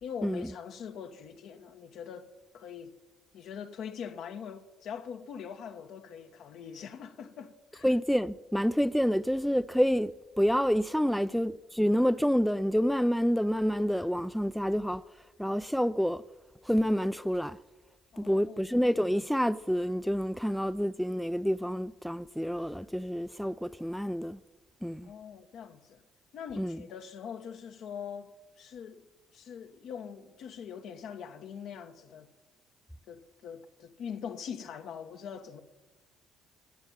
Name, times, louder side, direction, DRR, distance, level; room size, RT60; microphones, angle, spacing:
voice 1, 0.0-2.9 3.3-7.9 11.2-11.4 18.1-18.7 25.0-26.0 26.3-29.1 29.3-32.3 33.1-35.6, left 7 dB, 65° left, 1.1 m, -43 dB
voice 2, 7.8-15.0 15.4-16.2 16.6-17.6 18.2-24.4 24.8-25.1 26.6-26.8, equal, ahead, 0.4 m, -28 dB
15.0 x 7.2 x 8.9 m
hypercardioid pair, 60°, 0 cm